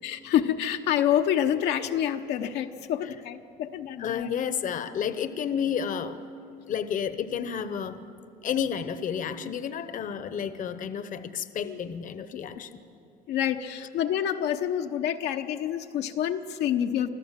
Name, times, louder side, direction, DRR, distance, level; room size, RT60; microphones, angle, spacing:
voice 1, 0.0-4.3 11.6-11.8 12.5-12.6 13.3-17.1, left 10 dB, 80° left, 5 dB, 0.9 m, -27 dB
voice 2, 4.0-6.2 6.7-8.0 8.4-12.8, left 8 dB, 50° left, 12 dB, 0.9 m, -31 dB
25.0 x 14.5 x 7.5 m, 2.6 s
cardioid pair, 110°, 17 cm